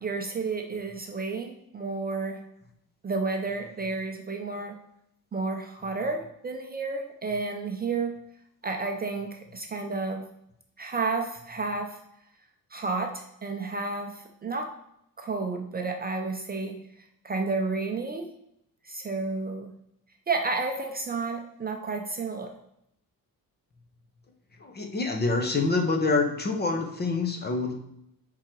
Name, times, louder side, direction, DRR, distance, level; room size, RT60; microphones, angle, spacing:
voice 1, 0.0-2.4 3.0-4.8 5.3-8.1 8.6-10.2 10.8-12.0 12.7-14.7 15.2-16.8 17.2-18.3 18.8-19.7 20.3-22.5, right 3 dB, 25° right, 3 dB, 0.5 m, -31 dB
voice 2, 24.6-27.7, left 3 dB, 25° left, 4 dB, 0.9 m, -26 dB
9.4 x 3.8 x 4.5 m, 0.77 s
cardioid pair, 160°, 36 cm